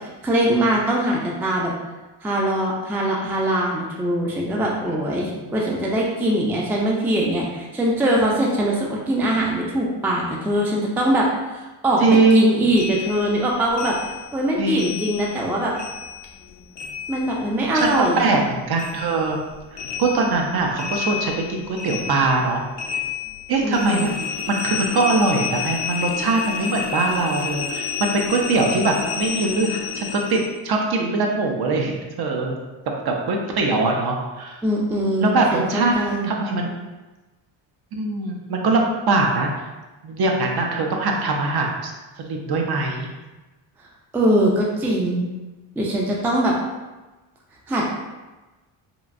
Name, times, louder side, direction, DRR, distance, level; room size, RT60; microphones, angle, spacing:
voice 1, 0.0-1.7 2.2-12.0 12.3-14.0 14.3-15.7 17.1-18.3 23.6-24.1 34.6-36.3 44.1-45.3 45.8-46.5 47.7-48.0, right 1 dB, 5° right, -2 dB, 0.3 m, -22 dB
voice 2, 12.0-12.7 14.6-14.9 17.7-19.4 19.7-22.6 23.5-32.6 33.0-34.6 35.2-35.9 36.2-36.7 37.9-39.5 40.0-41.9 42.2-43.1, right 3 dB, 50° right, 1 dB, 0.6 m, -22 dB
sound 1, 12.8-15.5 15.7-18.5 18.8-30.6, left 7 dB, 55° left, 0.5 m, -31 dB
3.0 x 2.5 x 2.4 m, 1.1 s
cardioid pair, 80°, 50 cm